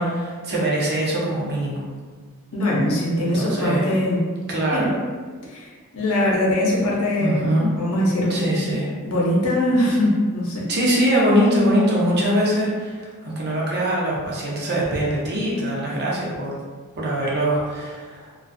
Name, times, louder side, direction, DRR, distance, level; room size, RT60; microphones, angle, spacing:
voice 1, 0.0-1.8 3.2-3.9 4.5-5.0 7.2-7.7 8.3-8.9 10.7-16.6 17.0-18.3, equal, 50° right, -4 dB, 0.6 m, -22 dB
voice 2, 2.5-4.2 4.7-4.9 5.5-7.4 7.8-8.4 9.0-10.7, left 1 dB, 65° left, -5 dB, 0.7 m, -21 dB
2.4 x 2.3 x 2.5 m, 1.5 s
head